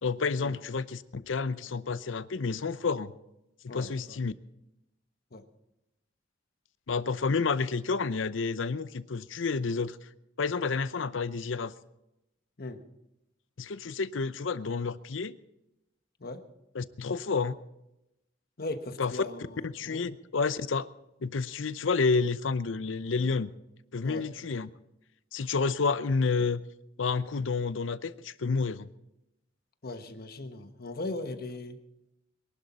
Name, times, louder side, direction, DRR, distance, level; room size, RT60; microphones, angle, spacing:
voice 1, 0.0-3.1 3.6-4.3 6.9-10.0 10.4-11.7 13.6-15.4 16.7-17.6 19.0-19.1 19.6-20.9 21.2-23.5 23.9-24.7 25.3-26.6 27.0-28.9, left 4 dB, 80° left, 15 dB, 0.7 m, -30 dB
voice 2, 3.7-4.2 5.3-5.4 12.6-12.8 16.2-16.4 18.6-20.1 24.0-24.3 29.8-31.8, left 2 dB, 55° left, 8 dB, 1.2 m, -39 dB
23.0 x 11.5 x 4.2 m, 0.89 s
head